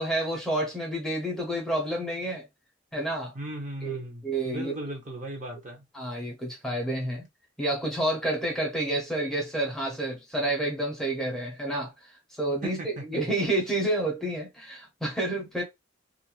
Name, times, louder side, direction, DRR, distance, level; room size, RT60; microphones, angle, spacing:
voice 1, 0.0-2.4 2.9-3.3 3.8-4.7 5.9-7.2 7.6-12.1 12.4-12.8 13.1-15.6, right 1 dB, ahead, 0.7 m, -29 dB
voice 2, 3.3-5.8 12.6-13.2, right 2 dB, 40° right, 0.8 m, -37 dB
2.4 x 2.1 x 2.8 m
head